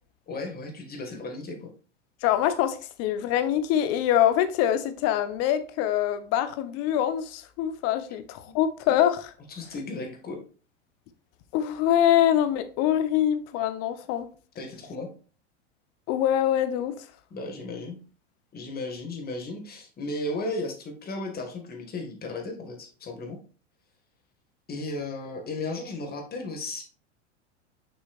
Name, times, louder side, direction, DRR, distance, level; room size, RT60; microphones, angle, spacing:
voice 1, 0.3-1.7 9.5-10.4 14.6-15.1 17.3-18.0 18.5-23.4 24.7-26.8, left 2 dB, 25° left, 1.7 m, -35 dB
voice 2, 2.2-9.3 11.5-14.3 16.1-16.9, left 11 dB, 45° left, 0.8 m, -24 dB
6.4 x 6.1 x 2.4 m
hypercardioid pair, 95°, 36 cm